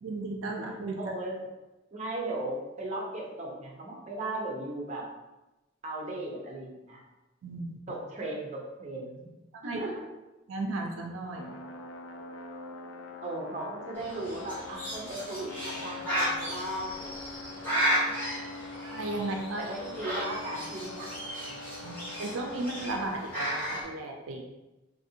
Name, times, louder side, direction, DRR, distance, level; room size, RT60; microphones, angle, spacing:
voice 1, 0.0-1.0 7.4-7.7 9.5-9.8 10.5-11.6 18.8-19.6 21.8-24.4, right 2 dB, 80° right, 2 dB, 0.4 m, -35 dB
voice 2, 1.0-1.4 1.9-5.0 5.8-7.0 7.9-9.3 9.6-10.0 13.2-17.1 19.6-21.1 21.5-21.6, right 2 dB, 35° right, -1 dB, 0.6 m, -37 dB
sound 1, 11.4-22.9, left 3 dB, 75° left, 0.4 m, -43 dB
Bird, 14.0-23.8, equal, 10° left, 1.0 m, -34 dB
3.4 x 2.5 x 2.7 m, 1.0 s
head